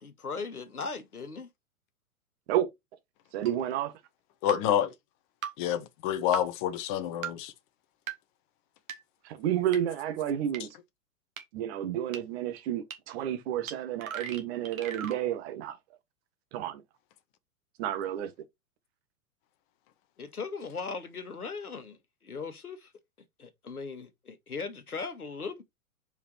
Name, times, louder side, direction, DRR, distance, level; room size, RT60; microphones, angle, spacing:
voice 1, 0.0-1.5 20.2-22.9 23.4-25.6, left 4 dB, 90° left, 1.4 m, -38 dB
voice 2, 3.3-3.9 9.2-10.7 11.5-15.8 16.5-16.8 17.8-18.3, right 11 dB, 45° right, 1.4 m, -31 dB
sound 1, 3.5-3.6 4.5-4.6 5.4-5.5 6.3-6.4 7.2-7.3 8.1-8.2 8.9-9.0 9.7-9.8 10.5-10.6 11.4-11.5 12.1-12.2 12.9-13.0 13.7-13.8 14.0-15.2, right 8 dB, 65° right, 1.8 m, -37 dB
voice 3, 4.4-4.9 5.6-7.5, left 10 dB, 35° left, 0.8 m, -28 dB
5.0 x 4.7 x 4.4 m
figure-of-eight pair, 110°, 43 cm